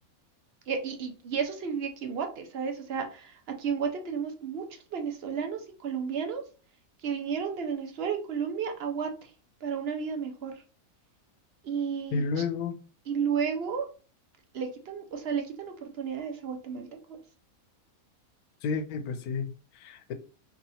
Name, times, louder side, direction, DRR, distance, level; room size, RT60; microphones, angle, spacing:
voice 1, 0.7-6.4 7.0-9.3 9.6-10.5 11.6-12.2 13.1-13.9 14.5-16.9, right 6 dB, 55° right, 0.7 m, -32 dB
voice 2, 12.1-12.8 18.6-20.1, left 4 dB, 80° left, 1.1 m, -31 dB
2.9 x 2.9 x 4.0 m
omnidirectional pair, 1.5 m